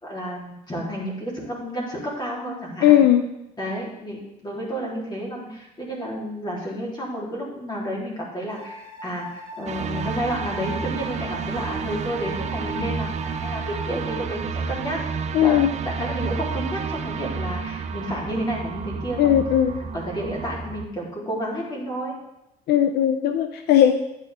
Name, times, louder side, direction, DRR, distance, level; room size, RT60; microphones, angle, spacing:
voice 1, 0.0-3.0 3.6-19.4 19.9-22.1, equal, 25° left, -3 dB, 3.6 m, -31 dB
voice 2, 2.8-3.2 15.3-15.7 19.2-19.7 22.7-23.9, left 11 dB, 75° left, 8 dB, 0.6 m, -17 dB
sound 1, 8.5-14.1, left 1 dB, 25° right, 2.3 m, -39 dB
sound 2, 9.7-20.9, right 5 dB, 40° right, 0.8 m, -31 dB
10.0 x 9.4 x 3.6 m, 0.87 s
cardioid pair, 110°, 17 cm